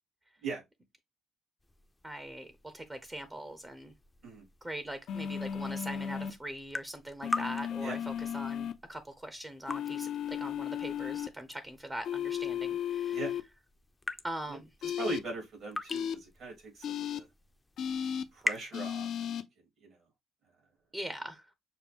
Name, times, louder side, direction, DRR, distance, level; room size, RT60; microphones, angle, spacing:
sound 1, 1.6-18.7, left 2 dB, 15° left, 0.5 m, -44 dB
voice 1, 2.0-3.9 4.6-13.2 14.2-14.7 20.9-21.5, right 1 dB, 20° right, 0.7 m, -42 dB
sound 2, 5.1-6.3 7.2-8.7 9.7-11.3 12.0-13.4 14.8-15.2 15.9-16.1 16.8-17.2 17.8-18.2 18.7-19.4, left 9 dB, 70° left, 0.5 m, -35 dB
voice 2, 14.8-17.3 18.3-19.4 19.8-20.0, right 3 dB, 65° right, 3.1 m, -40 dB
6.2 x 2.2 x 3.4 m
cardioid pair, 90°, 0 cm